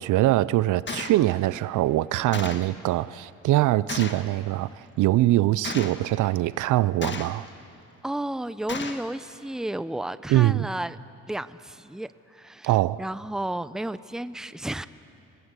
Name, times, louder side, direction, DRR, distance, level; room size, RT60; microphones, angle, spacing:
voice 1, 0.0-7.5 10.3-10.7 12.6-13.0, right 15 dB, 80° right, 0.5 m, -23 dB
Gunshot gunfire, 0.9-1.2 2.3-2.7 3.9-4.3 5.6-6.0 7.0-7.5 8.7-9.1, left 4 dB, 40° left, 1.7 m, -34 dB
voice 2, 8.0-11.0 11.3-12.7 13.0-14.9, right 1 dB, ahead, 0.6 m, -32 dB
26.0 x 18.5 x 8.2 m
cardioid pair, 90°, 30 cm